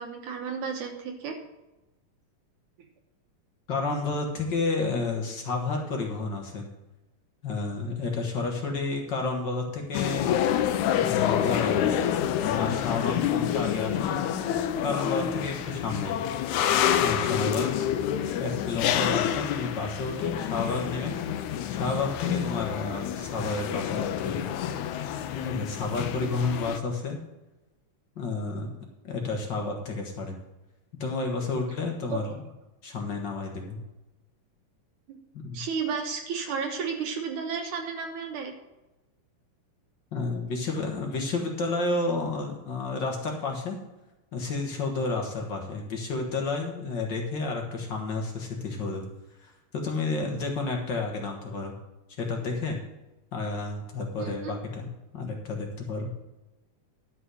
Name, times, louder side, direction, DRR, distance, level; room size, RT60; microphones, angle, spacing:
voice 1, 0.0-1.4 32.1-32.4 35.1-35.2 35.5-38.5 54.2-54.5, right 6 dB, 70° right, 3 dB, 2.4 m, -32 dB
voice 2, 3.7-6.7 7.4-10.3 10.9-11.9 12.4-16.2 17.0-17.9 18.4-21.2 21.7-24.4 25.3-27.2 28.2-28.7 29.0-30.3 31.0-32.4 32.8-33.8 35.4-35.6 40.1-43.8 44.3-49.0 49.4-51.7 52.2-52.8 53.3-54.9 55.1-56.1, left 3 dB, 55° left, 1 dB, 1.2 m, -31 dB
sound 1, 9.9-26.8, left 10 dB, 80° left, 1.8 m, -28 dB
11.0 x 6.1 x 6.2 m, 1.0 s
omnidirectional pair, 3.8 m